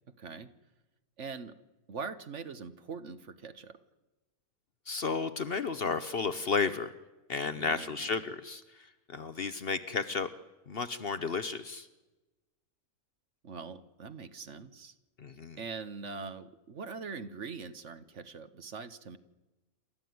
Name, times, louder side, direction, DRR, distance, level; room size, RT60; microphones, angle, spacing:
voice 1, 0.2-0.5 1.2-1.6 1.9-3.8 7.5-8.0 13.4-14.9 15.6-19.2, right 5 dB, 55° right, 12 dB, 1.4 m, -42 dB
voice 2, 4.9-6.9 7.3-10.3 10.7-11.9 15.2-15.6, left 4 dB, 45° left, 12 dB, 1.0 m, -33 dB
27.5 x 13.5 x 9.4 m, 1.1 s
omnidirectional pair, 1.5 m